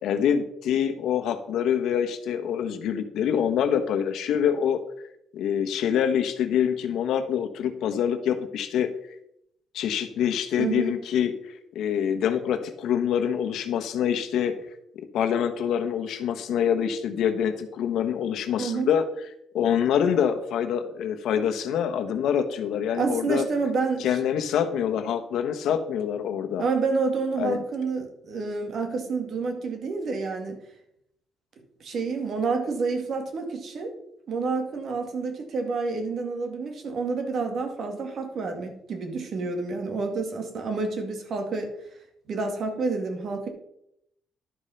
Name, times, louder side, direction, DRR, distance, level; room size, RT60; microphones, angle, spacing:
voice 1, 0.0-4.8 5.3-8.9 9.7-11.3 11.7-14.5 14.9-19.0 19.5-23.5 24.0-26.6 27.4-27.6, left 8 dB, 80° left, 7 dB, 1.1 m, -25 dB
voice 2, 10.6-11.0 18.6-18.9 22.9-24.2 26.6-30.6 31.8-33.9 34.3-41.7 42.3-43.5, right 4 dB, 60° right, 5 dB, 2.2 m, -29 dB
11.5 x 5.1 x 5.7 m, 0.76 s
cardioid pair, 90°, 0 cm